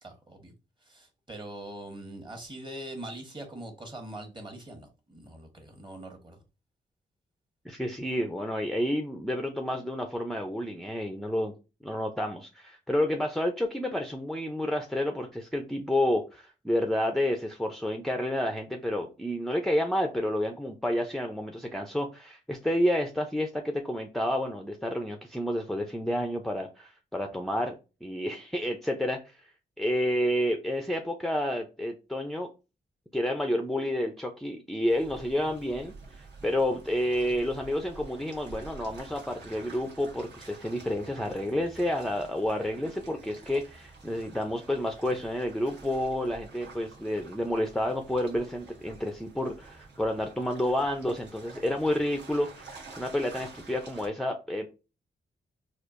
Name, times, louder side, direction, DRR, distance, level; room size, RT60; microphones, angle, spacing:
voice 1, 0.0-0.5 0.8-6.4, right 1 dB, 25° right, 1.3 m, -42 dB
voice 2, 7.6-11.5 11.8-27.7 28.0-29.4 29.8-32.5 33.1-35.9 36.4-54.7, left 1 dB, ahead, 0.5 m, -30 dB
sound 1, 34.9-54.1, right 3 dB, 70° right, 1.3 m, -49 dB
4.3 x 2.5 x 2.5 m
cardioid pair, 75°, 19 cm